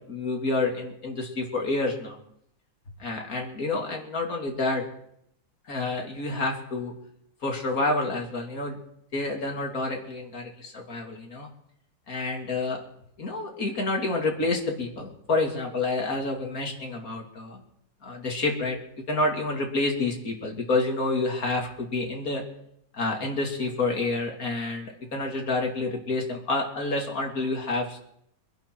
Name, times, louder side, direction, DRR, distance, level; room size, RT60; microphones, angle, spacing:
voice 1, 0.1-2.2 3.0-4.8 5.7-6.9 7.4-8.8 9.1-11.5 12.1-12.8 13.2-17.6 18.0-18.8 19.1-22.4 22.9-28.0, left 2 dB, 50° left, 1 dB, 2.9 m, -28 dB
24.0 x 11.0 x 4.6 m, 0.74 s
omnidirectional pair, 2.0 m